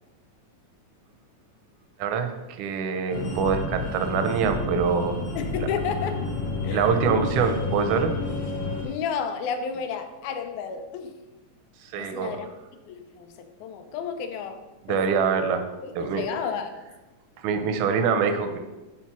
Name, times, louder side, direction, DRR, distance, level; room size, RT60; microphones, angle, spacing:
voice 1, 2.0-5.2 5.6-5.7 6.7-8.1 11.8-12.5 14.9-15.7 16.0-16.3 17.4-18.6, right 6 dB, 85° right, 7 dB, 2.1 m, -25 dB
sound 1, 3.1-8.8, left 3 dB, 50° left, 1.5 m, -30 dB
voice 2, 5.4-6.2 6.6-6.9 8.8-11.1 12.0-12.5 12.9-15.2 15.8-16.9, left 6 dB, 90° left, 8 dB, 2.1 m, -32 dB
5.7 x 4.6 x 6.0 m, 1.1 s
omnidirectional pair, 3.3 m